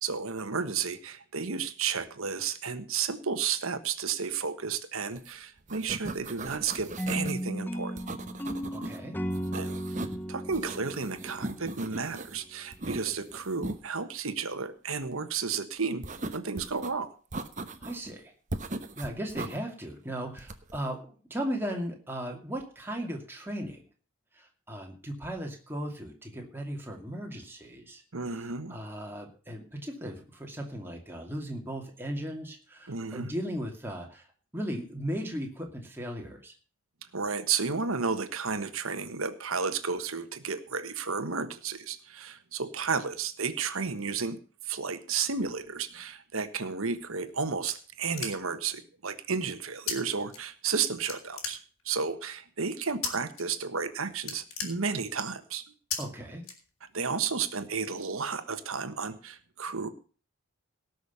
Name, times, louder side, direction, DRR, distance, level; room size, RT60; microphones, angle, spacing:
voice 1, 0.0-8.0 9.5-16.1 16.3-17.1 28.1-28.8 32.9-33.3 37.1-44.4 44.6-51.6 51.8-55.6 56.9-59.9, right 5 dB, 80° right, 11 dB, 1.3 m, -32 dB
sound 1, 5.2-5.3 5.6-7.4 8.0-9.0 9.3-10.2 10.5-12.4 12.7-13.8 16.0-16.9 17.3-18.1 18.5-19.6 20.4-20.8, right 2 dB, 35° right, 1.0 m, -38 dB
sound 2, 7.0-12.1, equal, 10° left, 0.7 m, -35 dB
voice 2, 8.7-9.2 17.8-18.3 19.0-23.8 24.3-28.0 28.3-34.3 34.5-36.5 56.0-56.5, equal, 10° right, 1 dB, 2.5 m, -37 dB
sound 3, 47.0-48.7 49.9-50.0 50.3-50.8 51.1-52.0 53.0-53.4 53.8-53.9 54.2-55.3 55.9-56.0 56.4-57.1, left 6 dB, 80° left, 3.5 m, -36 dB
18.0 x 6.3 x 6.9 m, 0.39 s
head